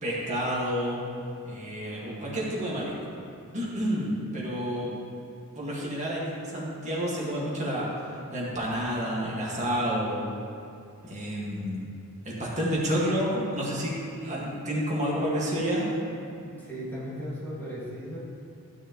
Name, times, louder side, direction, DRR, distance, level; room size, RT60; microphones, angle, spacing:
voice 1, 0.0-1.0 1.4-2.9 3.5-4.9 5.6-10.2 11.0-11.9 12.3-13.9 14.2-15.9, equal, 35° right, -5 dB, 1.8 m, -29 dB
voice 2, 16.4-18.2, equal, 10° left, -8 dB, 2.1 m, -36 dB
12.5 x 6.3 x 3.1 m, 2.5 s
head